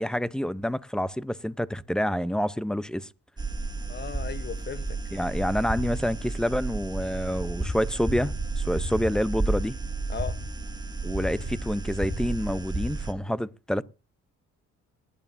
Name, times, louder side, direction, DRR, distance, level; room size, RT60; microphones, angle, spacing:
voice 1, 0.0-3.1 5.1-9.8 11.0-13.8, equal, ahead, 0.6 m, -28 dB
sound 1, 3.4-13.1, right 2 dB, 15° right, 2.1 m, -32 dB
voice 2, 3.9-5.0 10.1-10.4, left 7 dB, 35° left, 1.0 m, -36 dB
20.5 x 11.0 x 2.6 m
cardioid pair, 90°, 30 cm